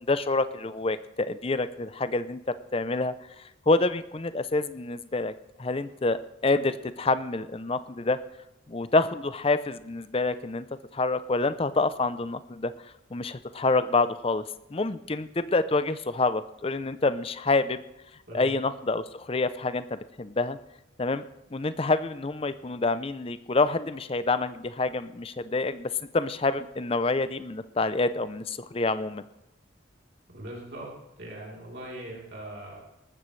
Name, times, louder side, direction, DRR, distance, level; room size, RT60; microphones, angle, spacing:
voice 1, 0.1-2.4 2.7-5.3 5.6-8.2 8.7-10.7 10.9-12.7 13.1-14.4 14.7-17.8 18.3-20.6 21.0-21.2 21.5-29.2, left 3 dB, 30° left, 13 dB, 0.5 m, -27 dB
voice 2, 18.3-18.6 30.3-30.9 31.2-32.8, right 1 dB, 55° right, -3 dB, 3.6 m, -40 dB
19.5 x 13.5 x 3.3 m, 0.88 s
head